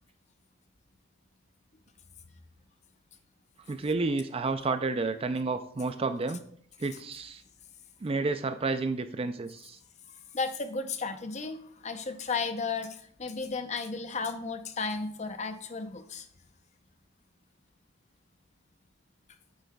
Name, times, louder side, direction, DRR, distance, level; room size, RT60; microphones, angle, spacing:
voice 1, 3.7-6.4 6.8-7.4 8.0-9.8, right 3 dB, 25° right, 9 dB, 0.3 m, -30 dB
voice 2, 10.0-16.3, left 4 dB, 30° left, 8 dB, 0.6 m, -34 dB
8.2 x 7.9 x 2.3 m, 0.62 s
head